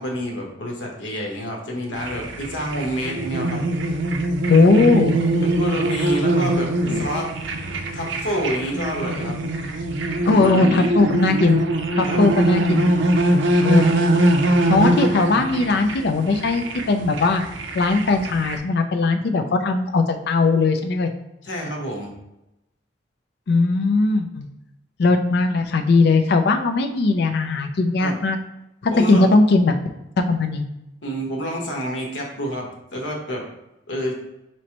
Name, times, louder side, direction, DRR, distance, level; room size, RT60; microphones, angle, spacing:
voice 1, 0.0-3.6 5.4-7.3 7.9-9.3 10.2-10.9 12.0-12.2 21.4-22.1 28.0-28.2 28.9-29.3 31.0-33.4 33.9-34.1, equal, 80° left, 0 dB, 1.1 m, -28 dB
sound 1, 1.9-18.6, right 1 dB, 80° right, 0.5 m, -22 dB
voice 2, 4.5-5.1 6.8-7.1 10.3-11.7 12.0-12.9 13.6-13.8 14.7-17.4 17.7-21.1 23.5-24.5 25.0-28.4 28.8-29.7 30.3-30.7, left 3 dB, 60° left, 7 dB, 0.4 m, -19 dB
5.2 x 3.1 x 2.9 m, 0.90 s
head